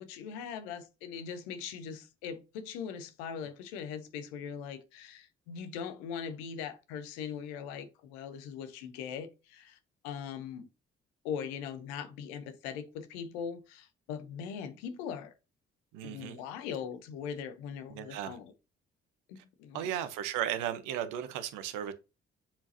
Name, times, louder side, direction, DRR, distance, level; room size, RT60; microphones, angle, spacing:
voice 1, 0.0-9.8 10.0-10.7 11.2-15.3 16.0-18.5 19.3-19.9, left 7 dB, 80° left, 1.0 m, -40 dB
voice 2, 15.9-16.4 17.9-18.4 19.4-19.5 19.7-21.9, right 10 dB, 75° right, 1.0 m, -35 dB
7.4 x 4.7 x 2.8 m
hypercardioid pair, 45°, 32 cm